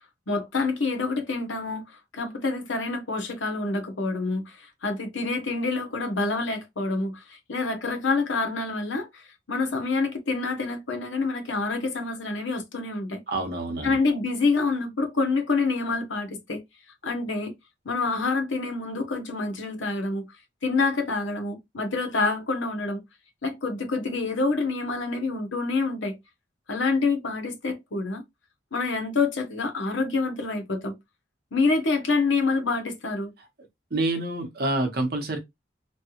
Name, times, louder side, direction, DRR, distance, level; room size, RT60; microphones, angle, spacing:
voice 1, 0.3-1.8 2.1-13.2 13.8-16.6 17.0-17.5 17.8-20.3 20.6-23.0 23.4-26.2 26.7-28.2 28.7-30.9 31.5-33.3, left 3 dB, 80° left, 0.9 m, -27 dB
voice 2, 13.3-14.0 33.9-35.4, right 2 dB, 55° right, 0.9 m, -27 dB
3.2 x 2.3 x 2.9 m
head